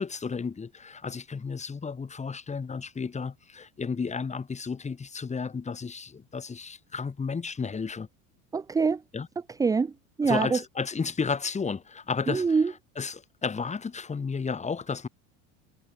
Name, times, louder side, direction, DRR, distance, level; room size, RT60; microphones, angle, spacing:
voice 1, 0.0-8.1 9.1-9.3 10.2-12.4 13.0-15.1, left 5 dB, 20° left, 7.2 m, -32 dB
voice 2, 8.5-9.0 9.5-10.6 12.3-12.7, right 5 dB, 10° right, 0.6 m, -25 dB
supercardioid pair, 135°, 38 cm